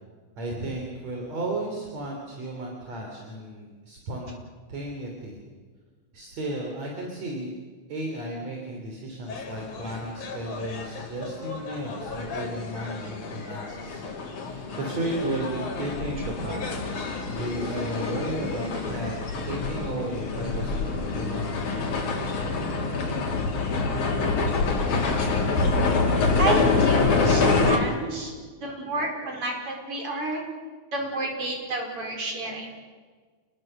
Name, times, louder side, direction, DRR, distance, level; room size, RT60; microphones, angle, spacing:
voice 1, 0.4-4.4 4.7-5.4 6.1-7.5 7.9-14.0 14.4-19.1 19.4-21.6, right 1 dB, 65° right, 0 dB, 4.7 m, -34 dB
sound 1, 9.3-27.8, left 4 dB, 85° left, 4.5 m, -27 dB
voice 2, 26.4-28.3 28.6-30.4 30.9-32.7, right 2 dB, 45° right, 1 dB, 6.1 m, -30 dB
29.5 x 21.0 x 6.8 m, 1.5 s
omnidirectional pair, 3.4 m